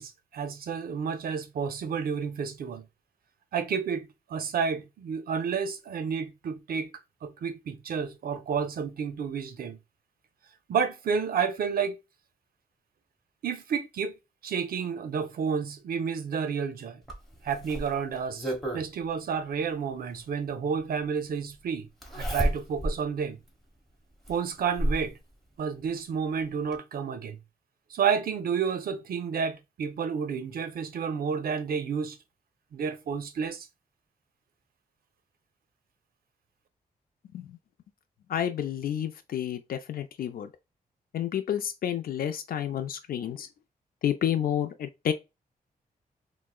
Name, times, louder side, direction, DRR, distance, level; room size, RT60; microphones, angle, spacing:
voice 1, 0.0-2.8 3.5-6.9 7.2-9.8 10.7-12.0 13.4-14.1 14.4-17.0 17.4-21.9 22.1-23.4 24.3-25.1 25.6-27.4 27.9-32.2 32.7-33.7, right 6 dB, 70° right, 0.6 m, -30 dB
Zipper (clothing), 17.1-18.9 20.3-20.4 22.0-23.0 23.5-23.6 24.3-25.1 26.3-26.4 26.7-26.8, right 1 dB, ahead, 1.2 m, -30 dB
voice 2, 38.3-40.5 41.1-43.5 44.0-45.1, left 10 dB, 70° left, 0.4 m, -30 dB
4.5 x 2.1 x 2.3 m
cardioid pair, 100°, 16 cm